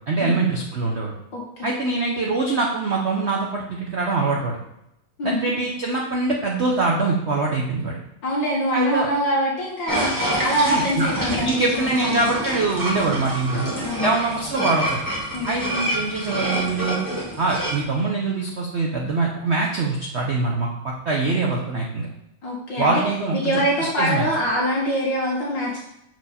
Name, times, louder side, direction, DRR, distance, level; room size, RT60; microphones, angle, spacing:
voice 1, 0.1-1.1 1.6-4.6 5.2-8.0 8.7-9.1 10.6-11.1 11.4-13.7 14.0-15.0 15.5-17.0 17.4-22.1 22.8-24.3, right 3 dB, 80° right, -1 dB, 0.6 m, -23 dB
voice 2, 1.3-1.7 5.2-5.5 8.2-12.3 13.8-14.1 15.3-15.5 22.4-22.9 23.3-25.8, equal, 65° left, -5 dB, 1.9 m, -24 dB
sound 1, 9.9-17.8, right 1 dB, 10° right, 1.3 m, -27 dB
6.4 x 4.7 x 4.1 m, 0.83 s
omnidirectional pair, 2.3 m